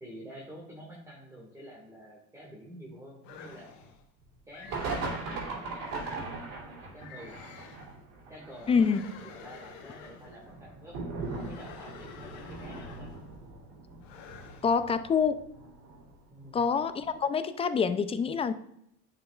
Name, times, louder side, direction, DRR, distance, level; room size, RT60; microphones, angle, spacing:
voice 1, 0.0-3.7 4.5-6.1 6.6-7.4 7.9-8.0 8.3-8.7 9.2-11.0 11.4-13.1 16.3-16.7, equal, 10° right, -3 dB, 1.8 m, -48 dB
sound 1, 3.2-4.0 4.5-5.2 5.8-6.4 7.0-7.9 8.5-10.4 11.2-13.3 14.0-14.8, left 6 dB, 85° left, 1.3 m, -49 dB
sound 2, 4.4-4.5 4.7-16.2 16.5-16.6 17.0-17.1, right 3 dB, 75° right, 2.9 m, -40 dB
voice 2, 8.7-9.0 14.6-15.5 16.5-18.5, left 6 dB, 15° left, 12 dB, 0.4 m, -26 dB
9.9 x 5.5 x 2.4 m, 0.76 s
supercardioid pair, 115°, 36 cm